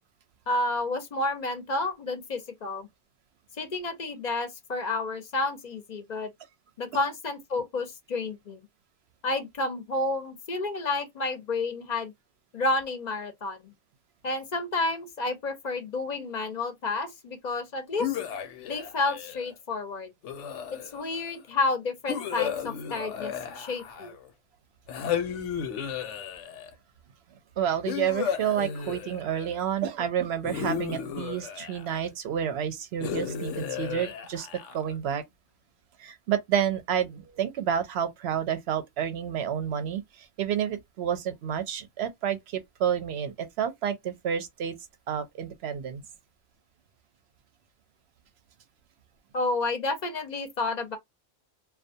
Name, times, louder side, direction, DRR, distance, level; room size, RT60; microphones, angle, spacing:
voice 1, 0.5-2.9 3.6-6.3 6.8-8.6 9.2-12.1 12.5-13.6 14.2-18.1 18.7-20.1 20.7-24.1 49.3-51.0, left 2 dB, 50° left, 0.6 m, -30 dB
sound 1, 18.0-19.5 20.2-21.2 22.1-24.3 24.9-26.7 27.9-29.6 30.4-32.1 33.0-35.0, left 8 dB, 90° left, 0.9 m, -34 dB
voice 2, 27.6-35.2 36.0-44.8 45.1-46.0, right 9 dB, 70° right, 0.8 m, -30 dB
2.4 x 2.2 x 2.6 m
omnidirectional pair, 1.2 m